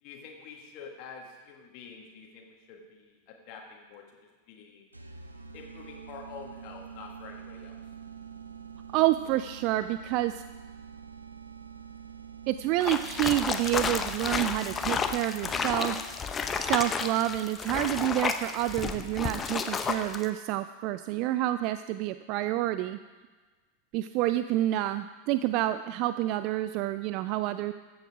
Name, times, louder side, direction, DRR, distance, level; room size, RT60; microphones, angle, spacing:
voice 1, 0.0-4.9 5.5-7.8, left 5 dB, 45° left, 1 dB, 1.7 m, -47 dB
sound 1, 4.9-16.3, right 7 dB, 85° right, 0.7 m, -46 dB
voice 2, 8.9-10.4 12.5-16.0 16.5-23.0 23.9-27.7, right 15 dB, 45° right, 12 dB, 0.3 m, -28 dB
sound 2, 12.8-20.3, left 5 dB, 20° left, 0.8 m, -31 dB
13.5 x 7.9 x 4.9 m, 1.3 s
figure-of-eight pair, 90°, 0 cm